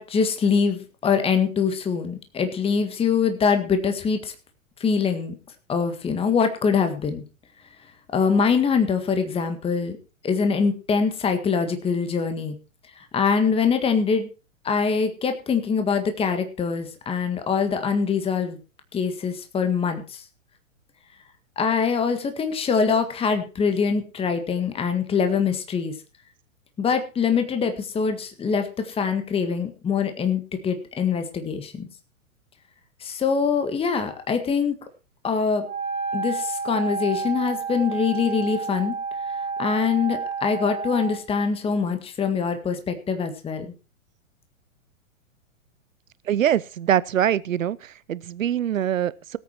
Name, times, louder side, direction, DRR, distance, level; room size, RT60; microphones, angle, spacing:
voice 1, 0.0-4.3 4.8-5.3 5.7-7.2 8.1-10.0 10.2-12.6 13.0-14.3 14.6-18.6 18.9-20.2 21.5-25.9 26.8-31.9 33.0-34.7 35.2-35.6 36.1-38.9 39.6-43.7, left 5 dB, 15° left, 1.7 m, -24 dB
Wind instrument woodwind instrument, 35.6-41.2, right 5 dB, 25° right, 2.8 m, -30 dB
voice 2, 46.2-49.4, right 10 dB, 70° right, 0.9 m, -24 dB
18.5 x 8.5 x 4.5 m
figure-of-eight pair, 110°, 40 cm